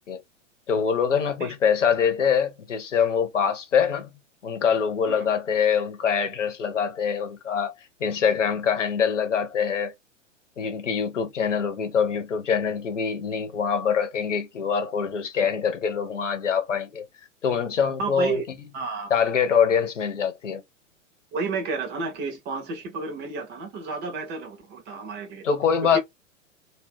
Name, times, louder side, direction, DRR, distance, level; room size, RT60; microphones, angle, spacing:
voice 1, 0.7-4.1 4.4-7.7 8.0-9.9 10.6-17.0 17.4-18.4 19.1-20.6 25.4-26.0, left 7 dB, 70° left, 0.9 m, -24 dB
voice 2, 18.0-18.4 18.7-19.1 21.3-25.4 25.9-26.0, right 4 dB, 25° right, 0.8 m, -31 dB
2.4 x 2.4 x 3.3 m
figure-of-eight pair, 100°, 37 cm